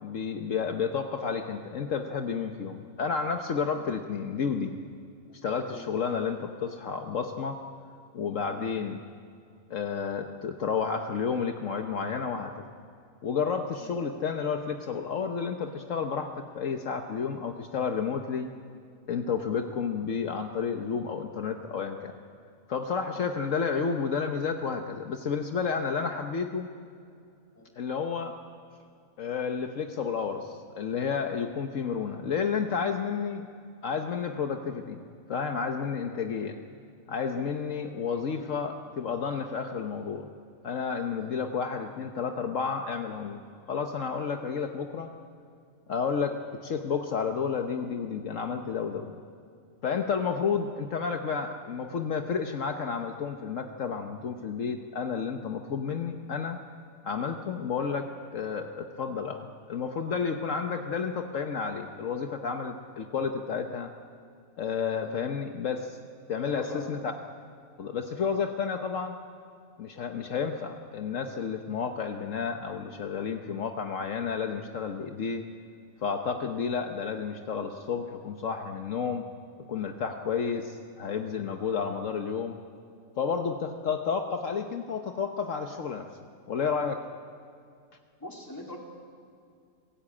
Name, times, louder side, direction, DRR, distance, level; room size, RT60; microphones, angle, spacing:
voice 1, 0.0-4.7 5.4-7.6 8.1-9.0 9.7-12.6 13.2-16.3 16.5-18.5 19.1-22.1 22.7-26.7 27.8-28.4 29.2-33.4 33.8-35.0 35.3-36.6 37.1-40.3 40.6-43.4 43.7-45.1 45.9-49.2 49.8-56.6 57.0-63.9 64.6-66.0 66.3-67.1 67.8-69.2 69.8-75.4 76.0-79.2 79.7-82.6 83.2-86.1 86.5-87.0, left 6 dB, 65° left, 5 dB, 1.4 m, -31 dB
voice 2, 66.4-66.9 88.2-88.8, left 1 dB, 15° left, -1 dB, 3.4 m, -43 dB
26.0 x 16.5 x 8.6 m, 2.4 s
omnidirectional pair, 1.4 m